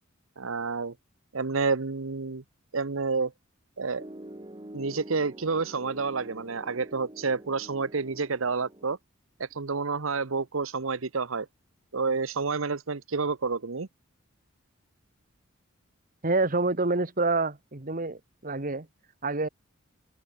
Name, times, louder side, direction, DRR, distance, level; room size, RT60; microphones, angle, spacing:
voice 1, 0.4-0.9 1.3-2.4 2.7-3.3 3.8-4.1 4.7-9.0 9.4-11.5 11.9-13.9, right 4 dB, 80° right, 1.0 m, -29 dB
Piano, 4.0-9.0, right 1 dB, 25° right, 1.7 m, -46 dB
voice 2, 16.2-18.9 19.2-19.5, right 3 dB, 45° right, 1.6 m, -27 dB
head